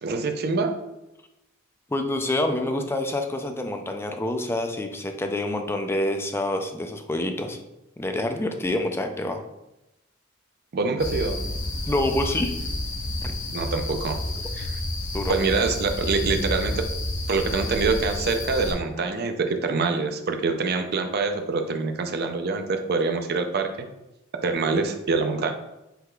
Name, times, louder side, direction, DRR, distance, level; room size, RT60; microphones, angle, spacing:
voice 1, 0.0-0.8 10.7-11.4 13.5-14.2 14.5-14.8 15.3-16.9 17.3-23.9 24.4-25.5, right 4 dB, 50° right, 6 dB, 0.5 m, -25 dB
voice 2, 1.9-7.6 8.0-9.4 11.9-12.6 13.2-13.3 15.1-15.3, left 1 dB, 10° left, 5 dB, 0.4 m, -27 dB
sound 1, 11.0-18.7, left 1 dB, 60° left, 0.8 m, -30 dB
5.5 x 3.8 x 2.3 m, 0.93 s
head